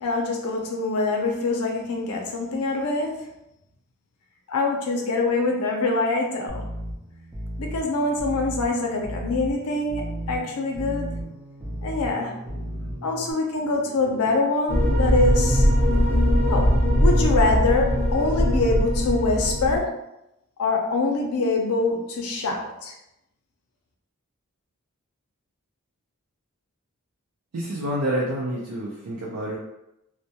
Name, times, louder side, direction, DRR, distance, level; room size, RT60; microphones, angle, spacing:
voice 1, 0.0-3.3 4.5-6.6 7.6-11.1 11.8-15.7 16.5-16.7 17.0-19.9 20.6-22.9, left 3 dB, 80° left, 1 dB, 0.5 m, -24 dB
sound 1, 6.5-13.3, equal, 15° right, 0.3 m, -35 dB
sound 2, 14.7-19.8, equal, 45° right, 0.7 m, -20 dB
voice 2, 27.5-29.6, right 1 dB, 90° right, -5 dB, 0.5 m, -28 dB
2.2 x 2.1 x 2.7 m, 0.86 s
head